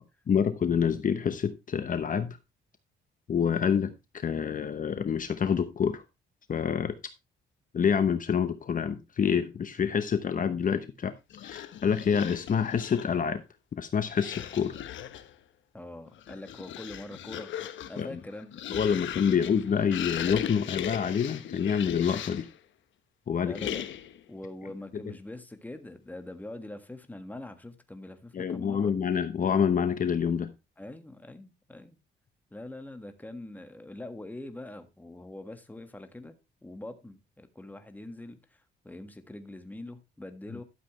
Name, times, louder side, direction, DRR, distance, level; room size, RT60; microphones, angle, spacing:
voice 1, 0.3-2.4 3.3-6.0 6.5-7.0 7.7-11.1 11.4-13.4 13.8-14.8 18.0-18.1 18.7-22.5 23.3-23.6 28.3-30.5, left 7 dB, 45° left, 0.9 m, -27 dB
sound 1, 11.3-13.2 14.1-15.3 16.1-22.6 23.5-24.2, left 11 dB, 70° left, 1.0 m, -38 dB
voice 2, 15.7-17.5 17.9-18.6 23.4-23.8 24.3-28.9 30.8-32.0 32.5-36.4 36.6-40.6, left 1 dB, 10° left, 1.6 m, -43 dB
12.5 x 7.5 x 3.1 m
cardioid pair, 90°, 20 cm